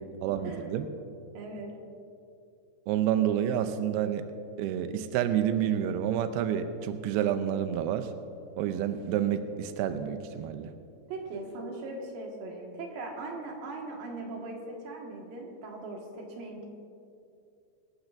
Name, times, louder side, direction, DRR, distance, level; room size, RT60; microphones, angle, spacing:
voice 1, 0.2-0.9 2.9-4.3 4.6-8.1 8.6-10.7, right 10 dB, 85° right, 8 dB, 2.2 m, -29 dB
voice 2, 1.3-1.7 11.1-16.7, right 2 dB, 60° right, -1 dB, 3.2 m, -39 dB
25.5 x 12.0 x 2.6 m, 2.6 s
omnidirectional pair, 5.0 m